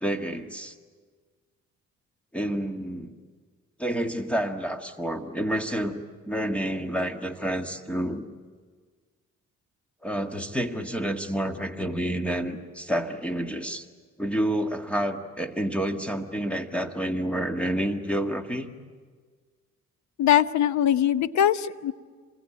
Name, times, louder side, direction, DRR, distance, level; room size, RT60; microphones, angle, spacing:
voice 1, 0.0-0.7 2.3-3.1 3.8-8.3 10.0-13.9 14.2-18.7, right 1 dB, 5° left, 6 dB, 1.8 m, -29 dB
voice 2, 20.2-21.9, left 10 dB, 70° left, 14 dB, 0.9 m, -21 dB
26.5 x 21.0 x 8.8 m, 1.5 s
cardioid pair, 90°, 30 cm